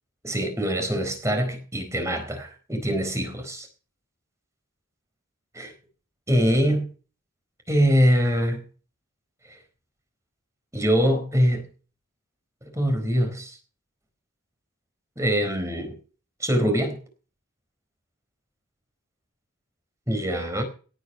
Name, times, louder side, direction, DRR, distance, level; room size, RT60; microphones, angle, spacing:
voice 1, 0.2-3.7 5.5-5.7 6.3-6.9 7.7-8.6 10.7-11.7 12.7-13.6 15.2-16.0 16.4-17.0 20.1-20.6, equal, 15° right, 6 dB, 4.3 m, -23 dB
17.5 x 9.1 x 5.7 m, 0.38 s
head